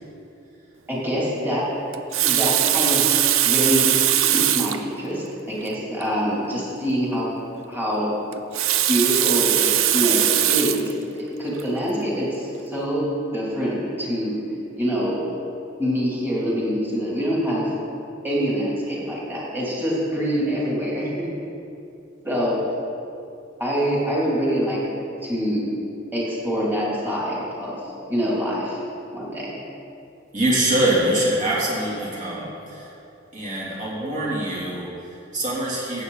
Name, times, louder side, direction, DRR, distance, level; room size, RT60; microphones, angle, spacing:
voice 1, 0.9-3.9 4.3-7.3 7.7-8.1 8.9-13.1 13.3-14.4 14.8-15.2 15.8-17.7 18.2-21.3 22.2-22.6 23.6-24.8 25.2-25.6 26.1-27.8 28.1-28.8 29.1-29.6, equal, 10° right, -6 dB, 3.1 m, -25 dB
Water tap faucet, 1.9-4.8 5.6-5.7 6.0-6.1 8.3-10.9 11.6-11.8, right 12 dB, 85° right, 0.5 m, -20 dB
voice 2, 30.3-32.9 33.3-36.0, right 1 dB, 40° right, -5 dB, 2.9 m, -24 dB
14.5 x 8.6 x 4.0 m, 2.7 s
head